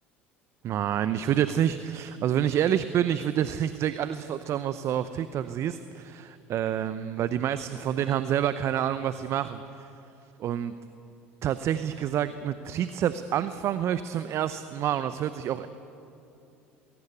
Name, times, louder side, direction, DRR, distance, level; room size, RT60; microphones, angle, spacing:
voice 1, 0.6-9.9 10.4-10.7 11.4-15.7, right 10 dB, 50° right, 13 dB, 0.8 m, -28 dB
21.5 x 17.5 x 8.3 m, 2.7 s
hypercardioid pair, 65°, 6 cm